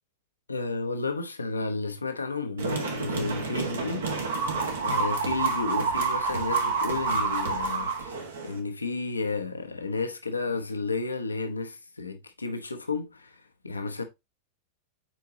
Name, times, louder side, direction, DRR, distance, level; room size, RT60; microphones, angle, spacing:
voice 1, 0.5-4.6 4.8-14.0, left 3 dB, 80° left, 0.9 m, -32 dB
sound 1, 2.6-8.6, right 4 dB, 65° right, 1.7 m, -28 dB
8.5 x 4.7 x 2.7 m
figure-of-eight pair, 90°, 0 cm